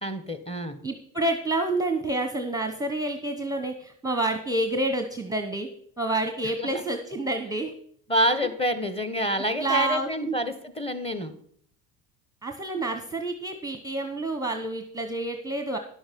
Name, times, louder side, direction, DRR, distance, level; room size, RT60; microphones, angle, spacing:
voice 1, 0.0-0.8 6.4-6.8 8.1-11.4, equal, 15° left, 10 dB, 1.3 m, -27 dB
voice 2, 0.8-5.7 6.0-7.7 9.6-10.3 12.4-15.8, right 2 dB, 10° right, 6 dB, 0.9 m, -28 dB
11.0 x 7.1 x 5.3 m, 0.62 s
supercardioid pair, 95°, 42 cm